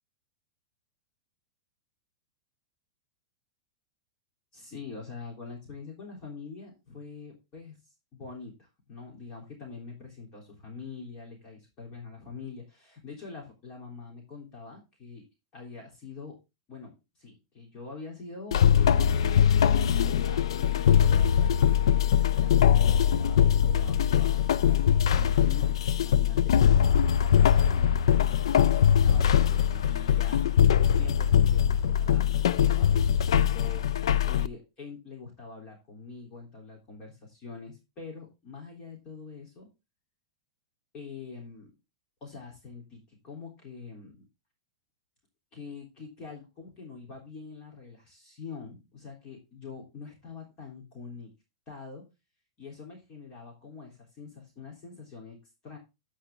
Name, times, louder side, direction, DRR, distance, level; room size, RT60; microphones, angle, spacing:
voice 1, 4.5-7.8 8.1-15.2 15.5-16.4 16.7-16.9 17.2-19.3 19.6-21.6 22.3-24.8 25.1-30.6 30.9-34.0 34.3-39.7 40.9-41.7 42.2-44.2 45.5-51.3 51.7-52.0 52.6-55.8, left 4 dB, 30° left, 0 dB, 3.6 m, -44 dB
sound 1, 18.5-34.5, left 9 dB, 85° left, 0.5 m, -22 dB
14.0 x 5.0 x 3.8 m, 0.26 s
supercardioid pair, 155°, 3 cm